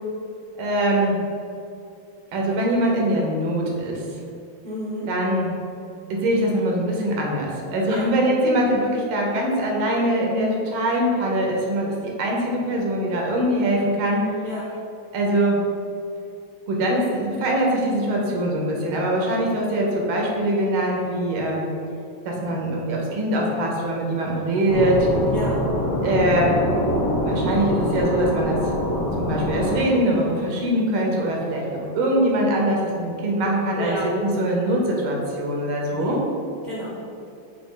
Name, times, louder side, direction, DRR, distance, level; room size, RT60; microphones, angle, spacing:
voice 1, 0.6-1.2 2.3-4.0 5.1-5.6 6.1-14.3 15.1-15.6 16.7-21.7 22.2-25.1 26.0-26.7 27.2-28.6 29.2-34.0 34.2-36.2, right 1 dB, 80° right, -1 dB, 1.6 m, -22 dB
voice 2, 4.6-5.1 7.8-8.1 14.4-14.6 25.3-25.6 33.8-34.1 35.9-36.1 36.6-36.9, equal, 15° left, -9 dB, 1.0 m, -31 dB
sound 1, 24.7-29.8, left 1 dB, 80° left, 1.6 m, -24 dB
5.1 x 2.7 x 3.6 m, 2.6 s
omnidirectional pair, 2.3 m